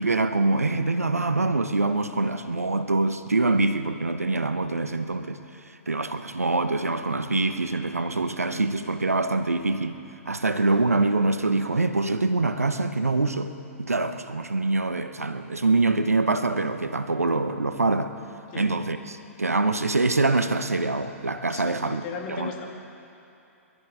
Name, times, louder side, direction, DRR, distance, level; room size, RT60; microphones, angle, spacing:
voice 1, 0.0-5.4 5.9-10.0 10.3-13.5 13.8-18.1 18.5-22.5, right 3 dB, 85° right, 10 dB, 0.9 m, -24 dB
voice 2, 21.5-22.7, left 6 dB, 40° left, 2 dB, 2.1 m, -37 dB
22.0 x 13.0 x 4.7 m, 2.7 s
figure-of-eight pair, 110°, 8 cm